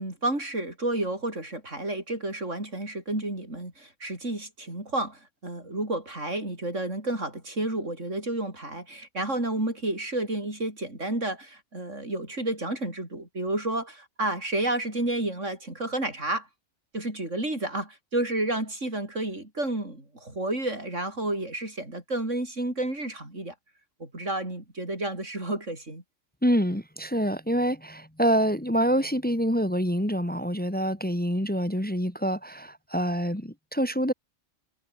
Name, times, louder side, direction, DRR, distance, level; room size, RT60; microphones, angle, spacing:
voice 1, 0.0-16.5 16.9-23.5 24.0-26.0, right 1 dB, 75° right, 7.1 m, -31 dB
voice 2, 26.4-34.1, equal, 5° left, 2.2 m, -26 dB
omnidirectional pair, 1.3 m